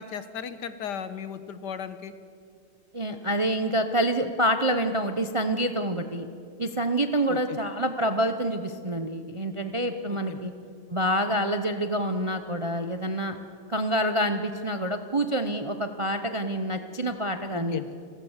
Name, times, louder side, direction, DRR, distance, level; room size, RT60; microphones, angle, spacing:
voice 1, 0.0-2.1 7.3-7.6 10.1-10.4 17.5-17.9, left 7 dB, 75° left, 12 dB, 1.7 m, -36 dB
voice 2, 2.9-6.3 6.6-10.5 10.9-13.4 13.7-17.8, right 1 dB, 30° right, 8 dB, 0.5 m, -27 dB
29.0 x 15.0 x 7.2 m, 2.4 s
omnidirectional pair, 1.9 m